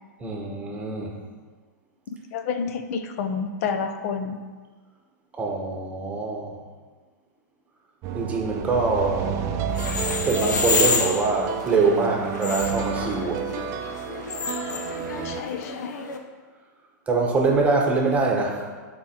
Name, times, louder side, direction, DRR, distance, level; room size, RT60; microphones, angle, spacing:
voice 1, 0.2-1.2 5.4-6.6 8.1-9.4 10.2-13.4 17.1-18.7, right 3 dB, 15° right, 0 dB, 1.1 m, -24 dB
voice 2, 2.3-4.4 15.2-16.0, left 5 dB, 55° left, 8 dB, 0.8 m, -29 dB
sound 1, 8.0-15.4, right 8 dB, 35° right, 0.6 m, -30 dB
sound 2, 9.7-16.2, left 4 dB, 85° left, 1.0 m, -29 dB
11.0 x 4.5 x 4.4 m, 1.4 s
hypercardioid pair, 140°, 10 cm